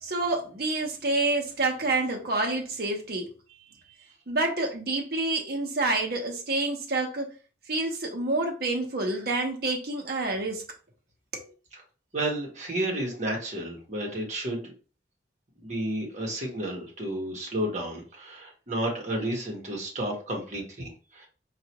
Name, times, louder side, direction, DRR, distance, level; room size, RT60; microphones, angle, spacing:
voice 1, 0.0-3.3 4.3-7.3 7.7-10.7 11.3-11.5, right 2 dB, 60° right, 0.9 m, -28 dB
voice 2, 12.1-14.7 15.6-21.3, right 1 dB, 40° right, 1.3 m, -32 dB
4.7 x 2.5 x 2.9 m
head